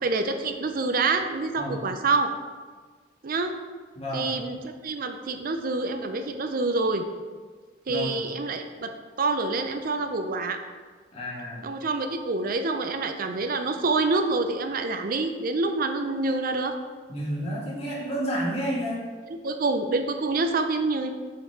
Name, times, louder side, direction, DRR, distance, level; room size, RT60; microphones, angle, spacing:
voice 1, 0.0-2.3 3.2-3.5 4.1-4.6 4.8-7.0 7.9-8.9 9.2-10.6 11.6-16.7 19.4-21.1, right 3 dB, 50° right, 7 dB, 0.5 m, -26 dB
voice 2, 4.0-4.3 7.9-8.1 11.1-11.6 17.1-19.0, equal, 35° left, -6 dB, 2.0 m, -30 dB
6.5 x 5.7 x 3.6 m, 1.5 s
head